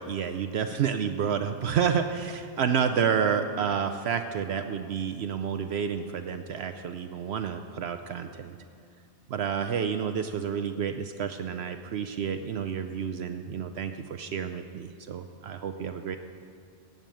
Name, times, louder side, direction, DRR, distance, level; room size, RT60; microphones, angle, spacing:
voice 1, 0.0-8.6 9.3-16.2, right 7 dB, 70° right, 8 dB, 0.9 m, -30 dB
16.5 x 6.7 x 9.0 m, 2.4 s
omnidirectional pair, 1.2 m